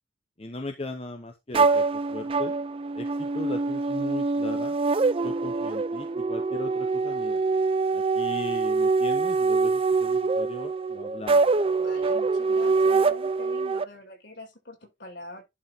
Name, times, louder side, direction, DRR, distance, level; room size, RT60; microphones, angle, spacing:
voice 1, 0.4-2.5 2.9-4.7 5.2-7.4 7.9-11.4, left 2 dB, 30° left, 0.9 m, -38 dB
sound 1, 1.5-13.8, right 4 dB, 30° right, 0.4 m, -24 dB
voice 2, 11.8-15.4, left 2 dB, 65° left, 6.0 m, -44 dB
11.5 x 4.4 x 3.6 m
head